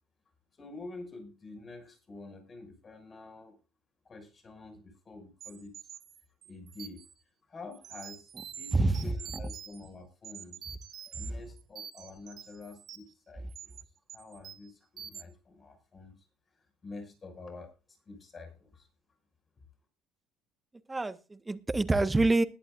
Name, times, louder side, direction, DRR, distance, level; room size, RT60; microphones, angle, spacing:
voice 1, 0.6-3.6 4.0-5.9 6.4-7.0 7.5-10.6 11.2-13.7 14.1-16.1 16.8-17.7 18.1-18.9, left 3 dB, 35° left, 5 dB, 6.4 m, -48 dB
sound 1, 5.4-7.1 7.7-9.9 10.2-11.3 11.6-13.1 13.5-13.8 14.1-14.7 15.0-15.2, right 8 dB, 50° right, 2.2 m, -46 dB
voice 2, 8.7-9.1 20.9-22.4, right 2 dB, 20° right, 12 dB, 1.5 m, -26 dB
20.0 x 11.5 x 2.6 m, 0.32 s
hypercardioid pair, 60°, 0 cm